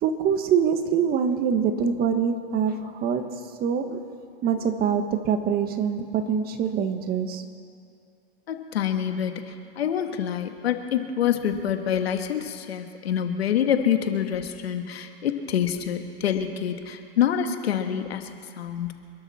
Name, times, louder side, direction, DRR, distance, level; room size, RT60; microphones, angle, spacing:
voice 1, 0.0-4.0 4.4-7.4, right 7 dB, 30° right, 8 dB, 1.4 m, -24 dB
voice 2, 8.5-18.9, left 9 dB, 85° left, 6 dB, 1.6 m, -26 dB
27.0 x 12.0 x 4.3 m, 2.4 s
hypercardioid pair, 130°, 30 cm